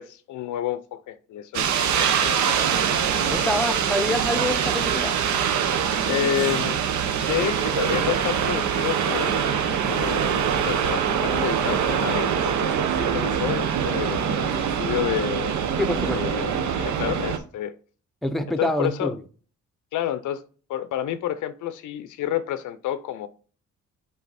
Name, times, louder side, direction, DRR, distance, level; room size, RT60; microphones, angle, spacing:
voice 1, 0.0-2.6 6.0-6.9 7.1-9.5 9.8-15.6 16.0-17.7 18.5-19.1 19.9-20.4 20.7-23.3, left 11 dB, 80° left, 0.7 m, -30 dB
sound 1, 1.5-17.4, right 7 dB, 70° right, 1.0 m, -24 dB
voice 2, 3.3-5.2 15.8-16.2 18.2-19.2, left 1 dB, ahead, 0.7 m, -26 dB
7.4 x 3.8 x 4.2 m
cardioid pair, 90°, 30 cm